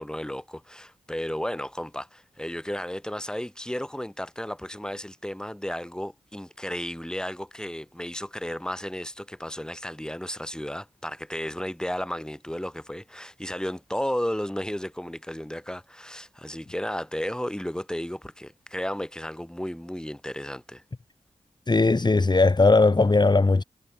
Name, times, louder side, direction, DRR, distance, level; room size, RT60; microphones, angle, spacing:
voice 1, 0.0-20.8, equal, 5° left, 3.4 m, -33 dB
voice 2, 21.7-23.6, left 3 dB, 35° left, 1.7 m, -19 dB
wide cardioid pair, 70°, 13 cm